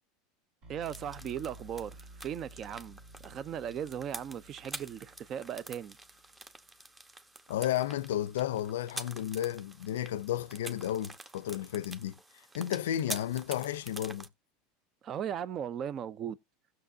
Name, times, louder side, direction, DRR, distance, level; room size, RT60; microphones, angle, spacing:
sound 1, 0.6-6.6, right 1 dB, 65° right, 3.0 m, -53 dB
voice 1, 0.7-6.0 15.0-16.4, right 9 dB, 40° right, 0.5 m, -38 dB
sound 2, 0.8-14.3, right 2 dB, 15° right, 1.0 m, -47 dB
voice 2, 7.5-12.1 12.5-14.3, left 11 dB, 85° left, 0.4 m, -33 dB
15.5 x 6.5 x 2.7 m
supercardioid pair, 110°, 0 cm